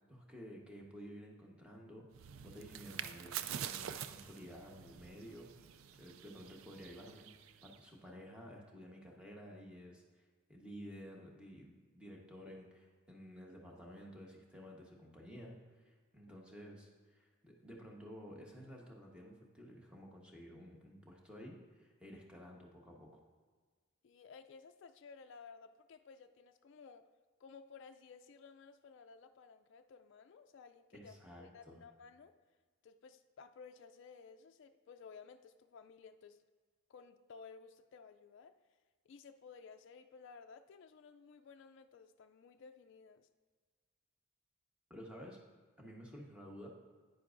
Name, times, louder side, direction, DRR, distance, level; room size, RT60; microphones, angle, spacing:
voice 1, 0.1-7.3 7.6-10.2 10.5-23.2 30.9-31.8 44.9-45.4 45.8-46.7, equal, 5° right, -1 dB, 1.0 m, -53 dB
sound 1, 2.1-7.9, right 9 dB, 75° right, 0.3 m, -46 dB
voice 2, 24.0-27.0 27.4-32.3 32.8-36.4 36.9-38.5 39.1-43.3, left 5 dB, 60° left, 7 dB, 0.3 m, -56 dB
10.0 x 9.3 x 2.5 m, 1.5 s
head